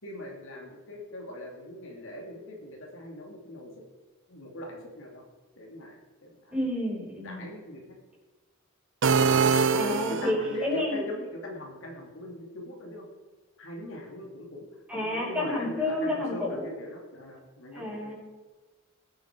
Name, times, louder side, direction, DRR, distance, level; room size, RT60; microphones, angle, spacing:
voice 1, 0.0-3.7 4.3-5.2 5.5-6.6 7.2-8.0 9.7-13.1 13.6-14.7 14.9-18.1, left 1 dB, 65° left, 0 dB, 2.7 m, -40 dB
voice 2, 6.5-7.5 9.7-11.0 14.9-16.7 17.7-18.1, left 1 dB, 5° right, -5 dB, 5.5 m, -30 dB
sound 1, 9.0-10.6, right 5 dB, 60° right, 0.7 m, -23 dB
20.5 x 9.2 x 4.7 m, 1.3 s
head